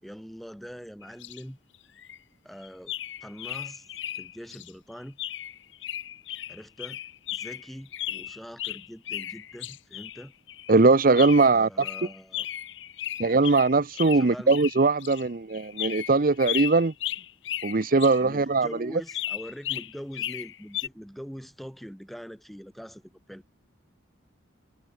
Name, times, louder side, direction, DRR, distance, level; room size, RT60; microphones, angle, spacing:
voice 1, 0.0-1.6 2.4-3.0 3.2-3.9 4.2-5.2 6.5-7.0 7.3-10.3 11.5-12.5 14.1-14.6 18.2-23.4, equal, ahead, 5.5 m, -43 dB
sound 1, 1.0-1.4 1.7-2.2 2.6-4.7 5.2-10.8 11.2-18.2 18.5-18.7 19.1-20.9, left 13 dB, 65° left, 0.9 m, -35 dB
voice 2, 10.7-11.7 13.2-16.9 17.6-18.9, right 3 dB, 45° right, 0.7 m, -21 dB
head